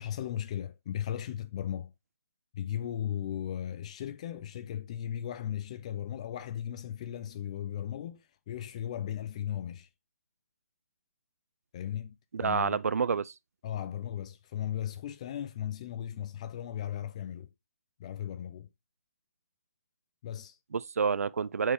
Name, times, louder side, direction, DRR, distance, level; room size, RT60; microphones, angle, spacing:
voice 1, 0.0-1.9 2.5-9.9 11.7-12.8 13.6-17.5 18.0-18.7 20.2-20.6, left 10 dB, 25° left, 0.4 m, -36 dB
voice 2, 12.3-13.3 20.7-21.7, right 6 dB, 70° right, 0.4 m, -28 dB
9.1 x 4.6 x 3.4 m
hypercardioid pair, 155°, 8 cm